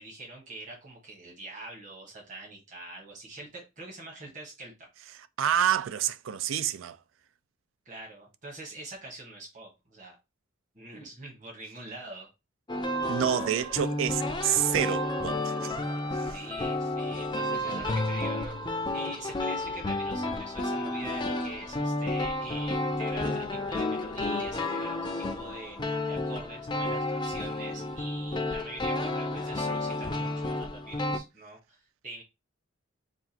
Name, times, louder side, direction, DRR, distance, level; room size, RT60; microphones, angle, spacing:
voice 1, 0.0-4.9 7.8-10.1 10.7-12.3 16.1-32.2, right 2 dB, 35° right, 1.4 m, -44 dB
voice 2, 5.4-7.0 13.1-15.8 16.2-16.3, right 10 dB, 75° right, 0.3 m, -28 dB
sound 1, 12.7-31.2, left 2 dB, 20° left, 0.4 m, -31 dB
3.6 x 2.4 x 4.2 m
head